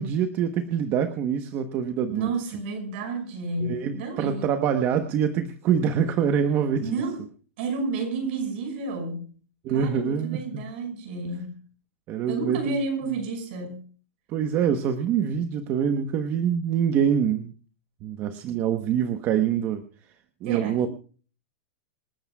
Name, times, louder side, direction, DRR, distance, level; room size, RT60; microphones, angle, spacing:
voice 1, 0.0-2.3 3.6-7.0 9.6-10.6 12.1-12.8 14.3-17.5 18.0-19.8 20.4-20.9, right 8 dB, 30° right, 1.1 m, -25 dB
voice 2, 2.1-4.5 6.8-7.2 7.6-9.4 9.7-11.6 12.3-13.8 20.4-20.9, right 3 dB, 55° right, 5.8 m, -31 dB
27.0 x 13.0 x 2.3 m
supercardioid pair, 160°, 7 cm